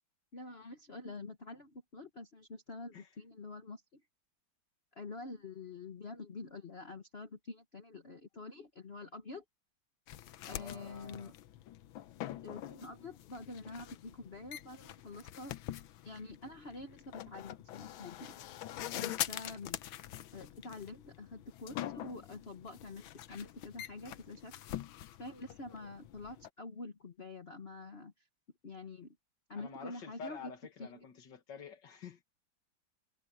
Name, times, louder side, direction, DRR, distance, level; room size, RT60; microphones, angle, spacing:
voice 1, 0.3-4.0 4.9-9.4 10.4-11.4 12.4-15.5 16.0-18.4 18.9-19.8 20.3-24.5 25.2-28.3 28.6-29.2 29.5-30.5 30.8-31.1, left 3 dB, 35° left, 1.3 m, -47 dB
sound 1, 10.1-26.5, left 13 dB, 85° left, 1.6 m, -45 dB
voice 2, 10.4-11.3 29.5-32.2, left 6 dB, 65° left, 2.4 m, -49 dB
omnidirectional pair, 2.1 m